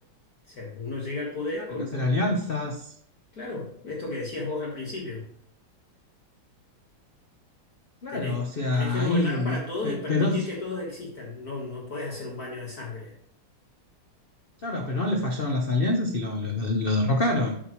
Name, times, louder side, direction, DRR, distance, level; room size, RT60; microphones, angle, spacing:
voice 1, 0.5-2.3 3.3-5.3 8.1-8.4 8.7-13.2, left 2 dB, 50° left, -3 dB, 1.9 m, -34 dB
voice 2, 1.9-2.9 8.0-10.5 14.6-17.6, left 2 dB, 65° left, 3 dB, 0.5 m, -26 dB
8.9 x 7.0 x 3.0 m, 0.69 s
omnidirectional pair, 2.2 m